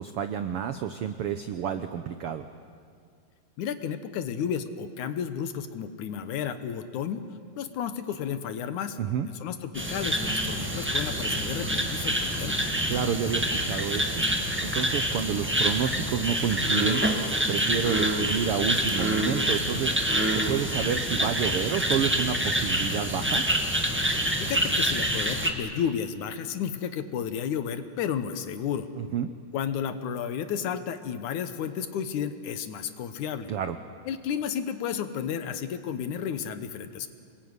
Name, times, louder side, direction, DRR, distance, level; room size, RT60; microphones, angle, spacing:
voice 1, 0.0-2.4 9.0-9.3 12.9-14.2 14.6-17.0 17.5-23.4 29.0-29.3 33.5-33.8, right 8 dB, 80° right, 9 dB, 1.3 m, -29 dB
voice 2, 3.6-7.2 7.6-9.0 9.3-12.7 24.4-28.9 29.5-33.5 34.1-37.1, left 8 dB, 70° left, 10 dB, 2.5 m, -32 dB
sound 1, 9.7-25.5, right 1 dB, 10° right, 0.7 m, -27 dB
26.5 x 21.0 x 9.7 m, 2.2 s
omnidirectional pair, 3.8 m